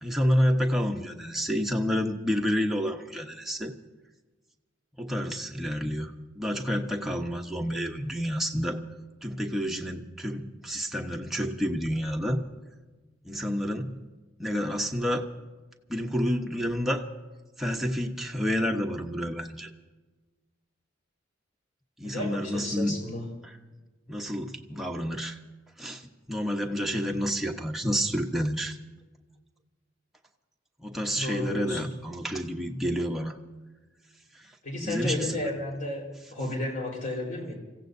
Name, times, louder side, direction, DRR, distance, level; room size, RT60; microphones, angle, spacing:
voice 1, 0.0-3.7 5.0-8.8 9.2-12.4 13.2-14.0 14.4-15.3 15.9-17.1 17.6-19.7 22.0-23.0 23.4-23.5 24.1-25.4 25.8-28.8 30.8-33.4 34.3-34.5 34.8-35.4, equal, ahead, 0 dB, 1.0 m, -29 dB
voice 2, 22.0-23.2 31.1-31.9 34.6-37.6, left 1 dB, 45° left, -1 dB, 4.4 m, -33 dB
30.0 x 15.5 x 2.7 m, 1.2 s
head